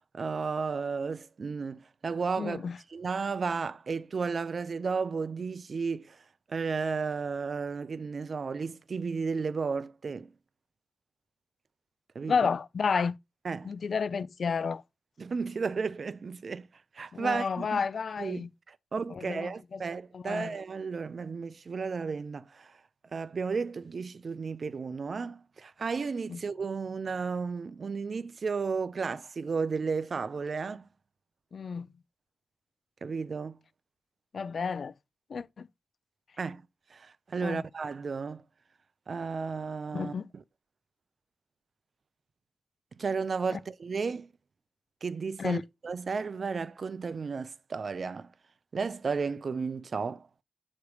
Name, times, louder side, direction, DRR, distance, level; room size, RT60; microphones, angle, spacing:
voice 1, 0.1-2.6 2.9-6.2 6.5-10.3 12.1-12.4 13.4-13.7 15.2-16.7 16.9-17.8 18.2-22.7 23.1-30.9 33.0-33.6 36.4-36.6 36.9-38.4 39.1-40.4 43.0-44.3 45.0-48.3 48.7-50.2, right 5 dB, 60° right, 0.5 m, -33 dB
voice 2, 2.4-2.8 12.3-13.2 13.6-14.8 17.1-18.5 19.1-19.8 20.1-20.6 26.3-26.4 31.5-31.9 34.3-34.9 35.3-35.7 37.4-37.6 39.9-40.3 43.5-43.6 45.4-45.6, left 5 dB, 70° left, 0.4 m, -31 dB
8.2 x 3.2 x 4.8 m
cardioid pair, 65°, 0 cm